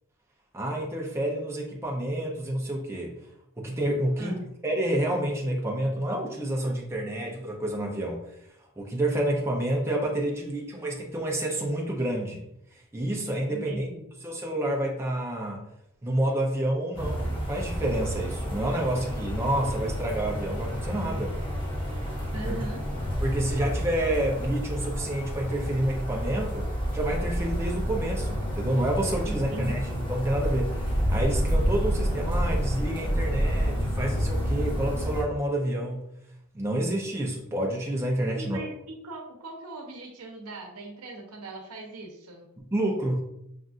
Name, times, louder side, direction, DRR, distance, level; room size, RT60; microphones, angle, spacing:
voice 1, 0.5-3.1 3.6-4.4 4.6-8.2 8.8-12.4 12.9-13.9 14.2-15.6 16.0-21.4 22.4-22.5 23.2-36.0 36.5-38.6 42.6-43.2, right 1 dB, 10° right, -2 dB, 0.6 m, -29 dB
voice 2, 13.5-14.0 22.1-22.8 29.3-29.8 38.3-42.5, right 2 dB, 75° right, 1 dB, 0.8 m, -40 dB
sound 1, 16.9-35.2, equal, 25° left, 1.0 m, -29 dB
5.3 x 2.5 x 2.5 m, 0.78 s
head